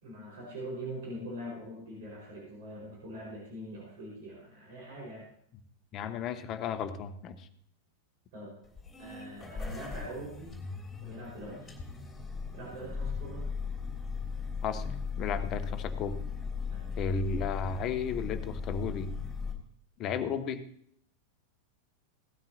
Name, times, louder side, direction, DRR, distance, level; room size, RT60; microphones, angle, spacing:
voice 1, 0.0-5.3 8.3-8.5 9.0-10.5 11.0-11.7 12.5-13.4 16.7-17.0, right 1 dB, 55° right, -4 dB, 5.3 m, -43 dB
voice 2, 5.9-7.5 14.6-14.8 15.2-16.2 17.0-19.1 20.0-20.6, left 6 dB, 35° left, 11 dB, 1.0 m, -34 dB
sound 1, 8.6-19.5, left 5 dB, 15° left, 3.2 m, -37 dB
17.5 x 12.5 x 2.9 m, 0.66 s
figure-of-eight pair, 90°, 0 cm